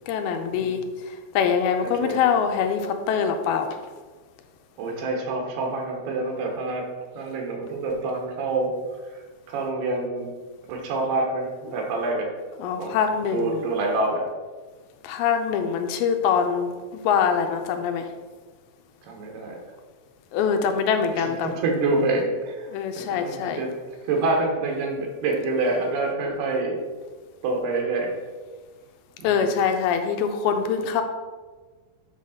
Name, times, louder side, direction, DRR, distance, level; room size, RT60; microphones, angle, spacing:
voice 1, 0.1-3.9 12.6-13.7 15.0-18.1 20.3-21.5 22.7-23.6 29.2-31.0, left 7 dB, 85° left, 6 dB, 2.5 m, -24 dB
voice 2, 1.8-2.2 4.8-6.9 7.2-8.7 9.1-9.2 9.5-10.3 10.7-12.3 12.8-12.9 13.3-14.3 19.0-19.6 21.1-23.7 24.0-26.8 27.4-28.1 29.2-29.5, right 2 dB, 85° right, 1 dB, 3.4 m, -27 dB
8.3 x 4.0 x 6.4 m, 1.4 s
omnidirectional pair, 4.5 m